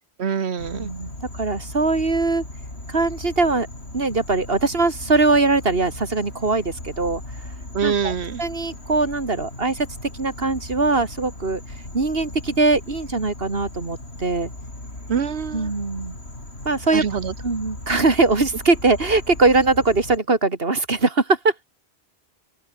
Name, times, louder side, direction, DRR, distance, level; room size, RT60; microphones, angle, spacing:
voice 1, 0.2-0.9 7.7-8.4 15.1-15.7 16.9-17.3, right 7 dB, 80° right, 1.4 m, -25 dB
sound 1, 0.6-20.2, left 2 dB, 80° left, 6.1 m, -38 dB
voice 2, 0.7-2.4 2.9-3.7 3.9-7.2 7.8-8.1 8.4-9.9 10.1-11.6 11.9-14.5 15.5-16.2 16.6-17.0 17.4-21.7, right 3 dB, 65° right, 2.9 m, -21 dB
omnidirectional pair, 1.1 m